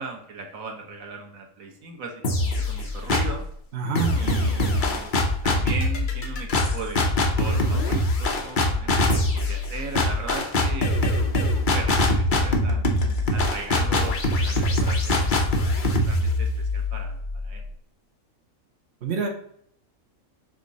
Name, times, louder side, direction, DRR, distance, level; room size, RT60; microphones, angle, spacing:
voice 1, 0.0-3.4 4.1-5.1 5.4-7.1 7.4-12.9 13.3-15.4 15.7-17.2 17.4-17.6, right 4 dB, 85° right, 2 dB, 1.5 m, -37 dB
sound 1, 2.2-3.5 4.0-17.7, left 1 dB, 45° left, 0.9 m, -23 dB
voice 2, 3.7-4.2 4.6-4.7 19.0-19.3, right 6 dB, 55° right, 2 dB, 1.2 m, -27 dB
6.4 x 3.7 x 4.0 m, 0.66 s
omnidirectional pair, 1.4 m